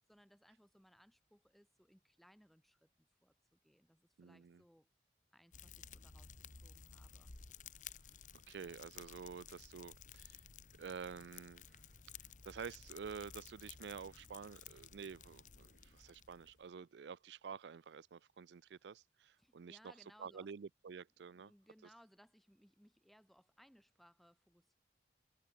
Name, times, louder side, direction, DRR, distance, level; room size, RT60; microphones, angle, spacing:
voice 1, 0.1-4.9 5.3-7.3 19.4-20.5 21.3-24.7, equal, ahead, 4.4 m, -67 dB
voice 2, 4.2-4.6 8.5-10.4 10.8-11.8 12.4-19.9 20.2-21.5, right 6 dB, 80° right, 0.4 m, -49 dB
Fire, 5.5-16.7, left 7 dB, 45° left, 1.3 m, -56 dB
head